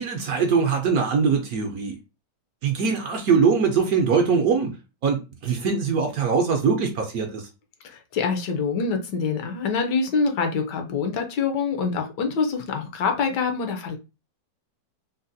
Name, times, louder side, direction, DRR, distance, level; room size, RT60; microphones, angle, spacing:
voice 1, 0.0-2.0 2.6-4.7 5.0-7.5, right 5 dB, 70° right, 0.9 m, -22 dB
voice 2, 7.8-14.0, left 5 dB, 75° left, 1.3 m, -25 dB
3.9 x 2.1 x 2.6 m
omnidirectional pair, 1.9 m